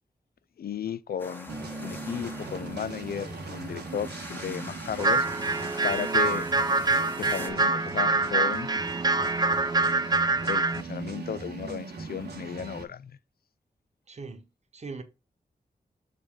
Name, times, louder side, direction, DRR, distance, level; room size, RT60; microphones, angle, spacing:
voice 1, 0.6-5.3 5.8-6.5 7.0-8.7 10.5-13.1, left 8 dB, 65° left, 0.4 m, -34 dB
sound 1, 1.2-7.5, left 1 dB, 10° left, 1.1 m, -44 dB
sound 2, 1.5-12.8, right 3 dB, 80° right, 1.2 m, -39 dB
sound 3, 5.0-10.8, right 3 dB, 25° right, 0.6 m, -25 dB
voice 2, 14.1-15.0, right 4 dB, 40° right, 1.1 m, -41 dB
6.4 x 5.1 x 3.7 m
cardioid pair, 65°, 17 cm